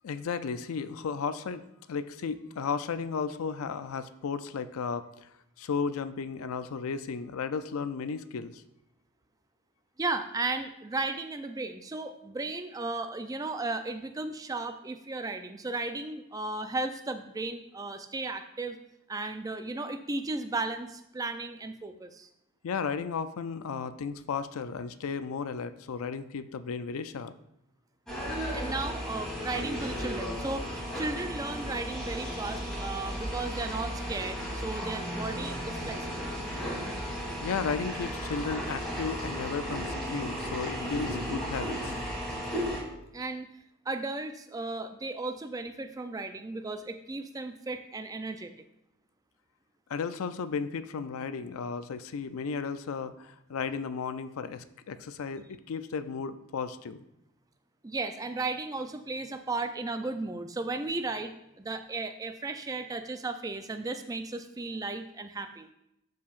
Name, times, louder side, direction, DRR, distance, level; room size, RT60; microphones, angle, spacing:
voice 1, 0.0-5.3 5.6-8.6 22.6-27.3 37.4-41.9 49.9-57.0, left 5 dB, 70° left, 12 dB, 0.4 m, -34 dB
voice 2, 10.0-18.8 19.1-22.3 28.5-36.3 43.1-43.5 43.9-48.5 57.8-65.7, right 3 dB, 15° right, 8 dB, 0.3 m, -35 dB
sound 1, 28.1-42.8, equal, 5° left, 1.9 m, -35 dB
12.5 x 4.6 x 2.5 m, 0.84 s
head